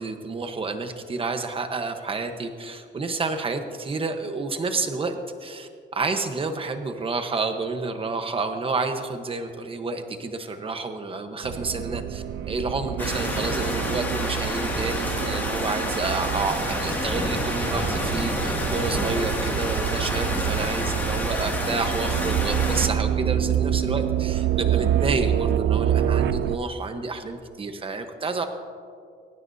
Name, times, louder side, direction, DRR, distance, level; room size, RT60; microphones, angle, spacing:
voice 1, 0.0-28.4, right 3 dB, 30° right, 6 dB, 1.1 m, -29 dB
sound 1, 11.4-26.6, right 10 dB, 70° right, 0.5 m, -27 dB
sound 2, 13.0-22.9, left 1 dB, 10° left, 2.3 m, -29 dB
22.5 x 18.5 x 2.8 m, 2.4 s
wide cardioid pair, 160°, 19 cm